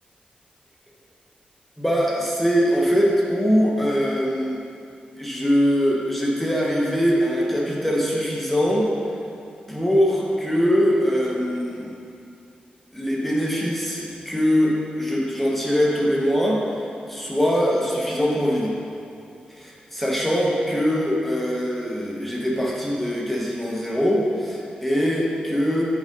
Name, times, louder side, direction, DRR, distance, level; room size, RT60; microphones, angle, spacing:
voice 1, 1.8-4.6 5.2-8.9 9.7-11.9 12.9-16.6 17.1-18.7 19.5-25.8, equal, 5° left, -4 dB, 1.3 m, -22 dB
9.3 x 6.7 x 3.9 m, 2.4 s
wide cardioid pair, 150°, 3 cm